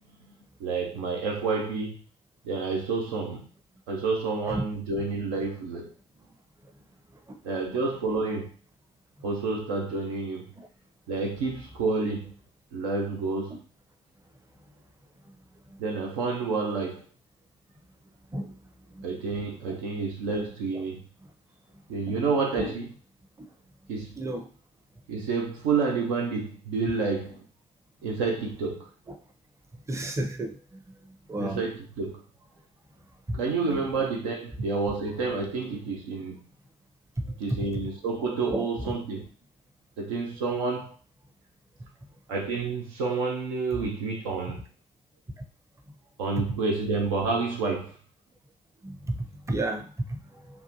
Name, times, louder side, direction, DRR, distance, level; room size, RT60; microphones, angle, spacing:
voice 1, 0.6-2.0 2.4-3.5 3.9-5.9 7.4-8.5 9.2-10.5 11.1-12.3 12.7-13.6 15.8-17.0 19.0-21.0 21.9-22.9 23.9-24.2 25.1-27.4 28.0-28.9 31.4-32.2 33.3-36.4 37.4-39.3 40.0-40.9 42.3-44.6 46.2-48.0, right 4 dB, 80° right, 0.5 m, -29 dB
voice 2, 24.2-24.5 29.1-29.2 29.9-30.5 31.3-31.6 33.3-33.4 37.5-37.6 38.5-38.9 43.8-43.9 48.8-48.9 49.5-50.2, right 1 dB, 15° right, 0.6 m, -31 dB
2.7 x 2.3 x 2.6 m
hypercardioid pair, 40°, 17 cm